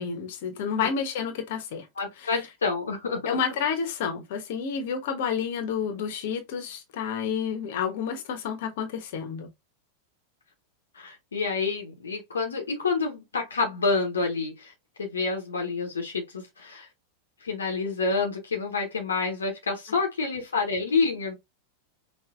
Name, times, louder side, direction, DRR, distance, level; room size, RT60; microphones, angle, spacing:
voice 1, 0.0-1.9 3.2-9.5, left 7 dB, 50° left, 1.3 m, -30 dB
voice 2, 2.0-3.4 10.9-14.7 15.0-16.9 17.4-21.3, left 4 dB, 70° left, 1.2 m, -28 dB
5.7 x 2.9 x 2.6 m
figure-of-eight pair, 90°, 0 cm